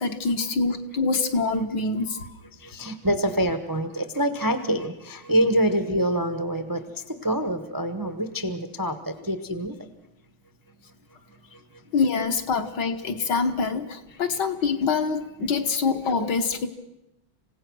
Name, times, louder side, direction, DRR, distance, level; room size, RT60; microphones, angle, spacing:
voice 1, 0.0-2.3 11.9-16.7, left 4 dB, 60° left, 6 dB, 1.8 m, -25 dB
voice 2, 2.6-9.8 11.5-11.6 14.1-14.2, right 1 dB, 20° right, 8 dB, 0.6 m, -26 dB
27.5 x 16.5 x 6.2 m, 0.91 s
omnidirectional pair, 2.2 m